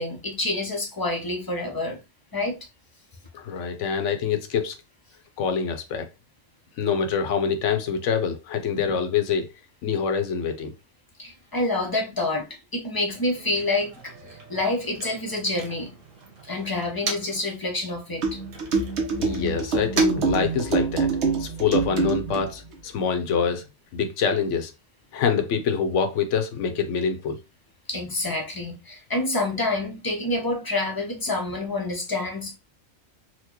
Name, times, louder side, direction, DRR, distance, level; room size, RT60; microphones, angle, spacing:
voice 1, 0.0-2.0 2.3-2.6 8.8-9.0 11.2-15.9 16.5-18.4 27.9-32.6, left 2 dB, 30° left, 0.4 m, -28 dB
voice 2, 3.3-4.8 5.4-6.1 6.8-9.5 9.8-10.7 19.2-21.1 21.4-23.6 23.9-24.7 25.1-27.4, left 6 dB, 75° left, 1.0 m, -25 dB
Motor vehicle (road), 13.1-17.5 17.8-21.1, right 3 dB, 90° right, 1.3 m, -39 dB
sound 1, 18.2-22.5, right 4 dB, 65° right, 1.1 m, -25 dB
4.3 x 2.1 x 2.8 m
omnidirectional pair, 1.3 m